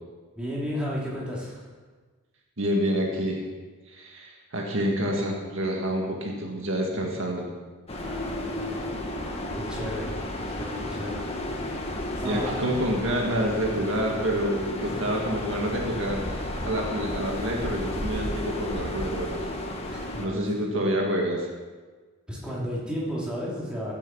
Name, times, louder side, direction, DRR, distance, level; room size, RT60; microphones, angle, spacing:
voice 1, 0.4-1.7 7.9-9.0 9.5-10.1 10.5-11.2 12.1-12.5 14.8-15.1 19.9-20.6 22.3-23.9, equal, 5° right, -7 dB, 3.2 m, -34 dB
voice 2, 2.6-3.4 3.9-7.5 12.2-19.5 20.2-21.5, equal, 60° right, 0 dB, 1.9 m, -28 dB
sound 1, 7.9-20.3, left 1 dB, 25° left, 1.4 m, -33 dB
16.0 x 7.6 x 6.2 m, 1.4 s
head